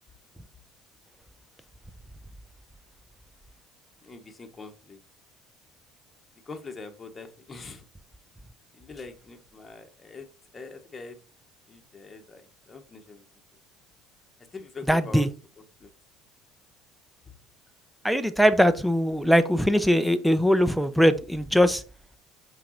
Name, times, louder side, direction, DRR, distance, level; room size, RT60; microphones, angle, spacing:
voice 1, 4.0-5.0 6.4-7.8 8.7-10.3 10.5-11.2 11.7-13.2 14.4-15.3 15.8-15.9 17.2-17.3, left 3 dB, 25° left, 1.6 m, -43 dB
voice 2, 14.9-15.3 18.0-21.8, equal, ahead, 0.9 m, -21 dB
5.7 x 5.1 x 4.2 m
hypercardioid pair, 75°, 0 cm